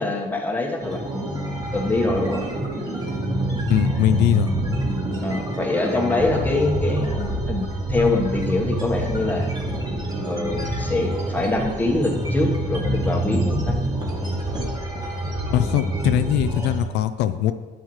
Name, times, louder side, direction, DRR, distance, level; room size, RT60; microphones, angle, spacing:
voice 1, 0.0-2.4 5.2-9.5 10.2-13.8, left 2 dB, 10° left, 0 dB, 1.3 m, -24 dB
sound 1, 0.8-16.8, right 1 dB, 25° right, 2.3 m, -26 dB
voice 2, 3.7-4.5 15.5-17.5, left 12 dB, 90° left, 11 dB, 0.4 m, -21 dB
10.0 x 7.3 x 3.2 m, 1.5 s
cardioid pair, 110°, 17 cm